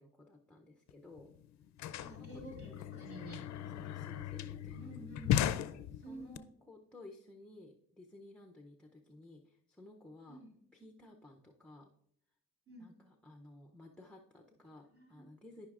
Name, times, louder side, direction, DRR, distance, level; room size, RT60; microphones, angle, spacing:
voice 1, 0.0-1.3 2.1-2.3 3.7-5.4 5.9-10.4 10.7-11.9 12.8-15.7, left 2 dB, 5° left, 2 dB, 0.6 m, -55 dB
sound 1, 0.9-1.0 1.2-6.4, left 11 dB, 70° left, 0.4 m, -37 dB
voice 2, 2.0-3.5 4.7-5.4 6.0-6.5 10.3-10.5 12.7-12.9 14.9-15.3, right 2 dB, 50° right, -1 dB, 2.1 m, -50 dB
13.0 x 5.4 x 2.4 m, 0.70 s
cardioid pair, 120°, 29 cm